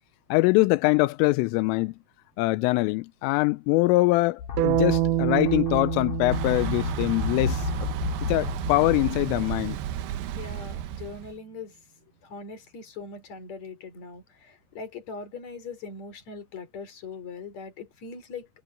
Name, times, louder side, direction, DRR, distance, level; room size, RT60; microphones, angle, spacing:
voice 1, 0.3-2.0 2.4-7.7 8.3-9.8, left 21 dB, 90° left, 3.2 m, -23 dB
sound 1, 4.4-9.5, left 7 dB, 55° left, 3.5 m, -33 dB
sound 2, 4.6-8.6, right 18 dB, 90° right, 3.4 m, -28 dB
Thunder / Bicycle, 6.3-11.4, right 11 dB, 70° right, 2.7 m, -33 dB
voice 2, 10.3-11.8 12.2-18.5, left 4 dB, 35° left, 4.6 m, -40 dB
omnidirectional pair, 5.7 m